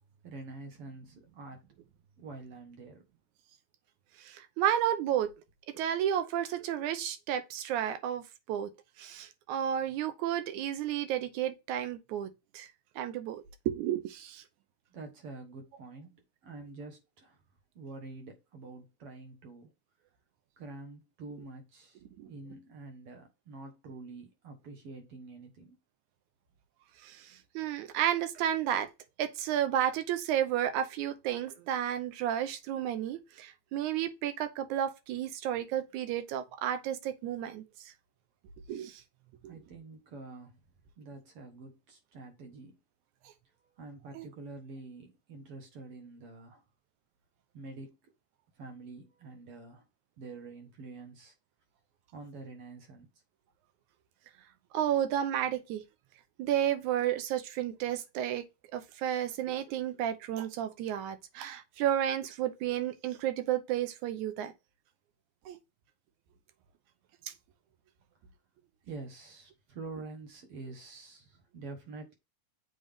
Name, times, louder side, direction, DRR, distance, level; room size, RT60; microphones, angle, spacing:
voice 1, 0.2-1.6 2.2-3.0 14.9-17.4 17.8-19.7 20.6-22.0 22.3-25.8 39.5-40.6 41.0-42.8 43.6-46.6 47.5-48.0 48.6-49.9 50.2-51.3 52.1-53.1 68.8-72.1, right 3 dB, 55° right, 2.1 m, -47 dB
voice 2, 4.2-5.3 5.7-8.7 9.0-12.7 13.0-14.4 22.2-22.3 27.0-28.9 29.2-37.9 38.7-39.0 39.4-39.5 44.2-44.3 54.7-55.8 56.4-58.4 58.7-64.5 65.5-65.6 67.3-67.4, right 10 dB, 85° right, 2.2 m, -32 dB
7.6 x 3.9 x 3.5 m
omnidirectional pair, 3.4 m